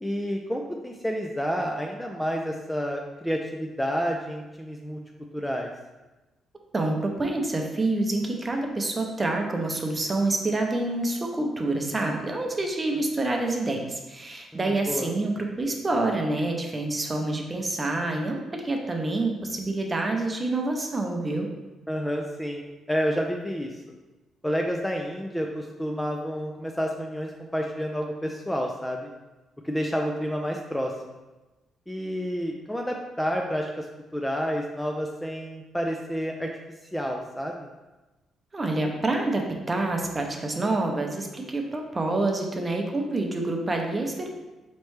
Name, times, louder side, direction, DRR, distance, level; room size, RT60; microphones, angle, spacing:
voice 1, 0.0-5.0 5.3-5.7 14.5-15.1 21.9-22.6 22.9-23.8 24.4-29.1 29.6-30.9 31.9-33.9 34.1-36.5 36.9-37.7, equal, 5° left, 1 dB, 0.3 m, -29 dB
voice 2, 6.7-21.5 38.5-44.3, right 2 dB, 25° right, 2 dB, 0.7 m, -27 dB
4.3 x 3.1 x 3.2 m, 1.1 s
cardioid pair, 90°, 0 cm